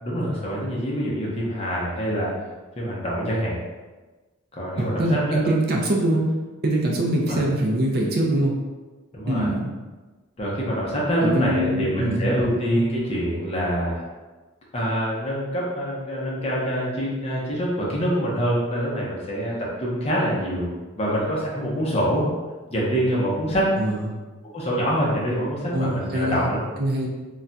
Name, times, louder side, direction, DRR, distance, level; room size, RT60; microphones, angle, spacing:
voice 1, 0.0-2.3 2.8-3.6 4.5-5.5 7.3-7.4 9.1-9.5 10.4-14.0 14.7-20.7 21.0-22.3 22.7-23.7 24.5-26.6, equal, 30° left, -5 dB, 0.6 m, -25 dB
voice 2, 4.8-6.2 6.6-8.6 9.3-9.7 11.2-12.5 23.8-24.1 25.7-26.5 26.8-27.1, right 1 dB, 45° right, -1 dB, 0.4 m, -23 dB
2.3 x 2.2 x 3.8 m, 1.3 s
head